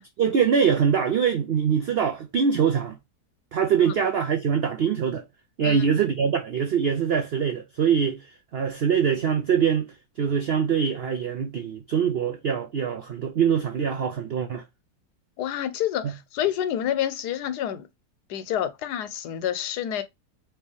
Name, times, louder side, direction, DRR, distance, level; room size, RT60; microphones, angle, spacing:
voice 1, 0.2-3.0 3.5-5.2 5.6-14.6 16.0-16.1, right 7 dB, 85° right, 0.5 m, -23 dB
voice 2, 15.4-17.9 18.3-20.0, left 10 dB, 80° left, 1.2 m, -28 dB
4.4 x 2.9 x 3.3 m
omnidirectional pair, 1.8 m